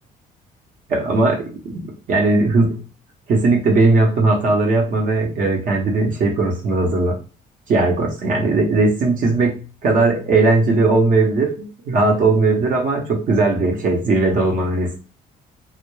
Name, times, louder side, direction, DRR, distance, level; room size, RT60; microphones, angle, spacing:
voice 1, 0.9-2.8 3.3-7.2 7.7-15.0, right 3 dB, 50° right, 1 dB, 0.8 m, -18 dB
2.2 x 2.1 x 3.1 m, 0.35 s
cardioid pair, 110°, 17 cm